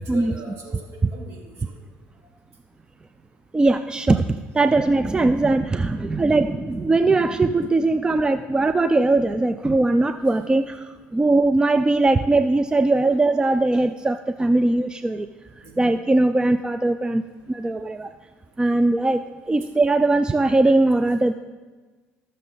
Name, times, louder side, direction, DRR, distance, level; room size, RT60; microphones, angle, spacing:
voice 1, 0.0-1.7 15.6-15.9, right 3 dB, 60° right, -1 dB, 3.2 m, -40 dB
voice 2, 3.5-15.3 15.8-17.2 17.5-18.1 18.6-21.3, right 2 dB, 15° right, 10 dB, 0.4 m, -20 dB
19.0 x 6.5 x 4.0 m, 1.3 s
supercardioid pair, 85°, 5 cm